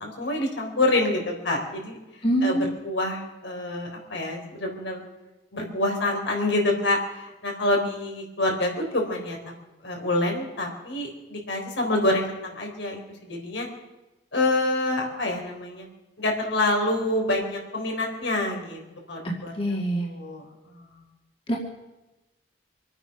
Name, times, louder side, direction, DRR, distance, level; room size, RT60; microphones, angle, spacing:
voice 1, 0.0-2.0 2.4-5.0 5.5-9.4 9.8-13.7 14.3-15.9 16.2-18.8 19.1-21.0, left 2 dB, 75° left, 1 dB, 4.0 m, -27 dB
voice 2, 2.2-2.7 19.2-20.1 21.5-21.6, right 1 dB, 30° left, -1 dB, 2.1 m, -25 dB
25.5 x 9.0 x 6.0 m, 1.0 s
head